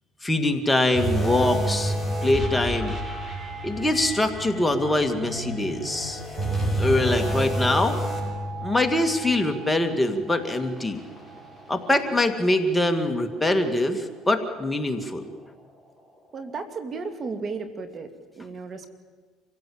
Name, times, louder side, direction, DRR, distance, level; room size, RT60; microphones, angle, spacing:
voice 1, 0.2-2.0 2.2-2.9 3.6-6.2 6.8-8.0 8.6-11.0 11.7-15.3, left 1 dB, 10° left, 5 dB, 2.2 m, -23 dB
sound 1, 0.9-12.4 12.8-13.0 13.6-13.7, right 1 dB, 5° right, 6.7 m, -30 dB
voice 2, 16.3-18.9, right 4 dB, 40° right, 8 dB, 2.4 m, -34 dB
27.0 x 16.5 x 8.7 m, 1.4 s
supercardioid pair, 90°, 0 cm